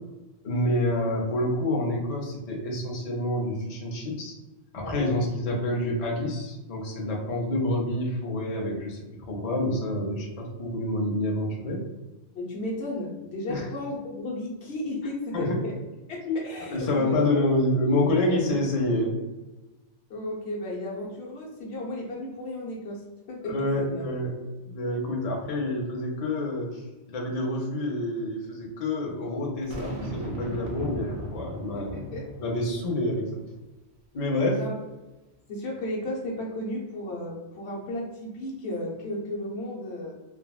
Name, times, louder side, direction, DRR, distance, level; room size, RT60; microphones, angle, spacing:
voice 1, 0.4-4.4 4.7-11.8 13.5-13.6 15.3-15.6 16.2-16.4 16.7-19.2 23.4-24.3 24.7-32.1 32.4-33.4 34.1-34.6, left 1 dB, 45° left, -1 dB, 0.5 m, -28 dB
voice 2, 4.8-5.2 12.3-15.7 16.1-17.2 18.5-18.6 20.1-24.1 31.7-32.3 34.3-34.7 35.5-40.1, left 1 dB, 70° left, -3 dB, 1.0 m, -34 dB
Boom, 29.7-33.0, equal, 70° right, 0.9 m, -37 dB
3.4 x 2.1 x 2.3 m, 1.1 s
omnidirectional pair, 1.2 m